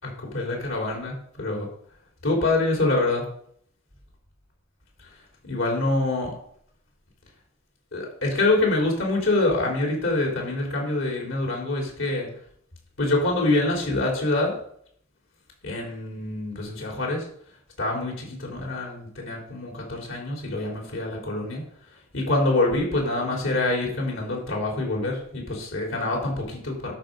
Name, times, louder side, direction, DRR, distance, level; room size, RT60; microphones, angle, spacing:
voice 1, 0.0-1.7 2.2-3.2 5.4-6.3 7.9-12.3 13.0-14.5 15.6-17.2 17.8-21.6 22.1-26.9, left 2 dB, 70° left, -1 dB, 3.9 m, -25 dB
10.0 x 7.5 x 5.3 m, 0.64 s
head